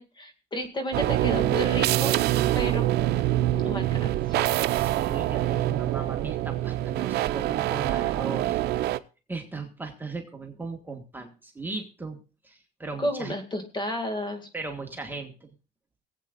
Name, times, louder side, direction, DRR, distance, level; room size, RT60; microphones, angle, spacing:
voice 1, 0.0-2.1 2.5-2.9 3.5-4.4 13.0-14.5, equal, 25° left, 7 dB, 2.2 m, -32 dB
sound 1, 0.9-9.0, right 14 dB, 75° right, 0.6 m, -25 dB
voice 2, 4.7-8.6 9.3-12.2 12.4-13.3 14.5-15.5, right 4 dB, 10° right, 3 dB, 1.5 m, -37 dB
23.5 x 8.3 x 2.5 m, 0.34 s
cardioid pair, 110°, 17 cm